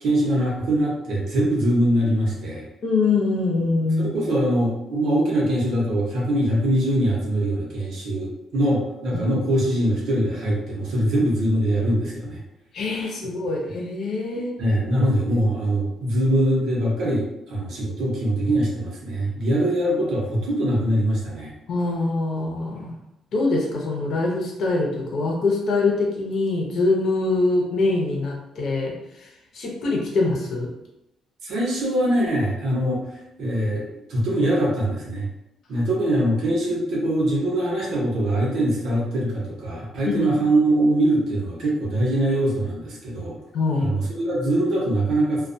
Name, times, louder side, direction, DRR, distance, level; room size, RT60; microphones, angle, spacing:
voice 1, 0.0-2.6 4.0-12.4 14.6-21.5 31.4-33.0 33.4-35.3 35.7-43.3 43.8-45.5, right 1 dB, 70° right, -4 dB, 0.9 m, -22 dB
voice 2, 2.8-4.1 12.7-14.5 21.7-22.9 23.3-29.3 29.5-30.7 40.2-40.4 43.5-43.9, left 3 dB, 60° left, -2 dB, 0.7 m, -24 dB
2.3 x 2.3 x 2.6 m, 0.85 s
cardioid pair, 130°, 0 cm